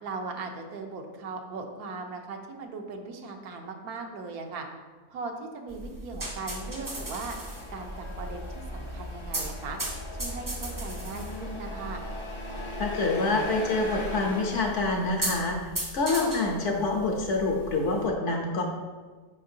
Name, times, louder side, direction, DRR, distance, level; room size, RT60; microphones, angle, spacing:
voice 1, 0.0-4.7 5.1-7.4 7.7-7.9 8.2-9.8 10.2-12.0, right 3 dB, 80° right, 3 dB, 1.3 m, -38 dB
sound 1, 5.7-18.1, right 1 dB, 20° right, 0.5 m, -37 dB
Truck, 6.4-15.3, left 1 dB, 35° left, 0.5 m, -40 dB
voice 2, 12.8-15.6 15.9-18.6, left 3 dB, 60° left, 1 dB, 1.0 m, -26 dB
7.5 x 5.1 x 2.7 m, 1.4 s
omnidirectional pair, 1.6 m